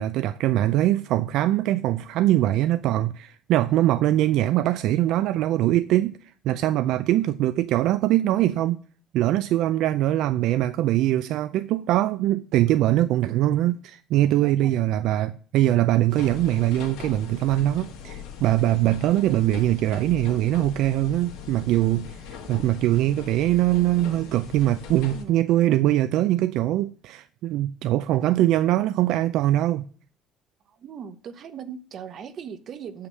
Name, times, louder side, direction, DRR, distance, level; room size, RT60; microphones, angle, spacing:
voice 1, 0.0-8.8 9.1-29.8, right 14 dB, 60° right, 0.4 m, -22 dB
voice 2, 14.3-14.9 25.1-25.5 30.7-33.1, right 7 dB, 40° right, 0.9 m, -39 dB
sound 1, 16.1-25.2, left 7 dB, 85° left, 2.0 m, -40 dB
8.1 x 5.6 x 7.4 m
cardioid pair, 170°, 0 cm